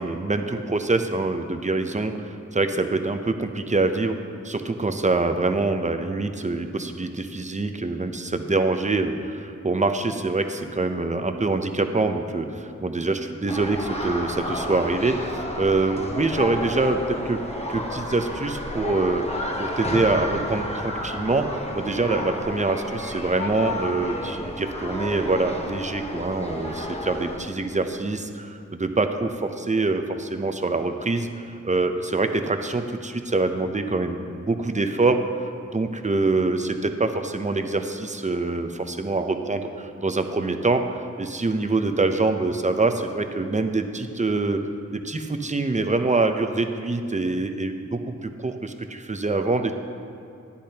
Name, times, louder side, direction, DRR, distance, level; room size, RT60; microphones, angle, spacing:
voice 1, 0.0-2.1 2.5-4.2 4.4-17.4 17.7-31.3 31.6-44.6 44.9-49.7, right 3 dB, 25° right, 7 dB, 0.7 m, -25 dB
sound 1, 13.5-27.4, left 1 dB, 20° left, 1.2 m, -31 dB
12.0 x 9.9 x 2.9 m, 2.5 s
cardioid pair, 45°, 30 cm